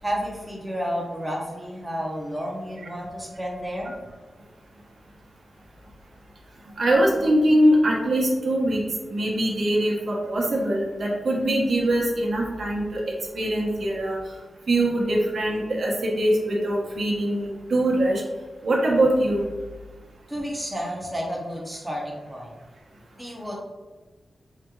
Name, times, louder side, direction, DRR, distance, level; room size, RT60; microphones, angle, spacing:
voice 1, 0.0-3.9 20.3-22.5 23.1-23.5, equal, 5° right, -4 dB, 0.6 m, -31 dB
voice 2, 6.8-8.8 9.1-13.0 13.3-14.2 14.7-18.2 18.6-19.5, right 1 dB, 60° right, -2 dB, 0.8 m, -22 dB
4.8 x 3.1 x 2.3 m, 1.3 s
wide cardioid pair, 165°, 0 cm